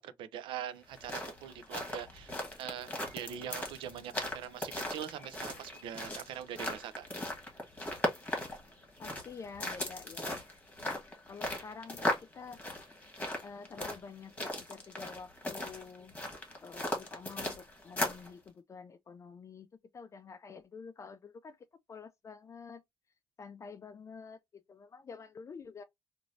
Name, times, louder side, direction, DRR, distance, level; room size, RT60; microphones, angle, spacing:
voice 1, 0.0-7.4, right 9 dB, 90° right, 0.4 m, -43 dB
sound 1, 0.8-18.3, left 1 dB, 15° left, 1.3 m, -38 dB
voice 2, 9.0-10.4 11.3-12.6 13.4-16.1 16.6-19.7 19.9-21.6 21.9-22.8 23.4-25.8, left 5 dB, 35° left, 0.3 m, -48 dB
3.0 x 2.6 x 2.6 m
cardioid pair, 95°, 8 cm